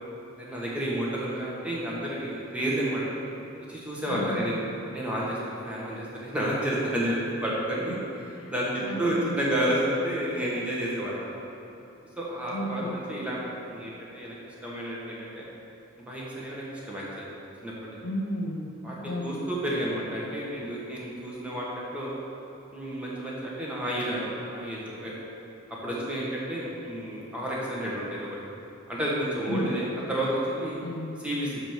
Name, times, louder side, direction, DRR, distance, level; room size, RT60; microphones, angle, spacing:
voice 1, 0.4-3.0 3.7-4.6 4.9-7.1 7.4-8.0 8.5-11.4 12.2-14.4 14.6-15.4 16.1-17.3 17.6-18.0 18.8-21.7 21.9-22.2 22.7-25.1 25.8-28.4 28.9-30.8 31.2-31.6, right 1 dB, 5° right, -6 dB, 1.3 m, -31 dB
voice 2, 4.1-4.6 8.4-8.5 8.8-9.4 12.5-13.0 18.0-18.7 19.0-19.4 29.5-29.7 30.8-31.2, equal, 70° left, 1 dB, 0.8 m, -33 dB
6.0 x 5.1 x 6.6 m, 2.9 s
head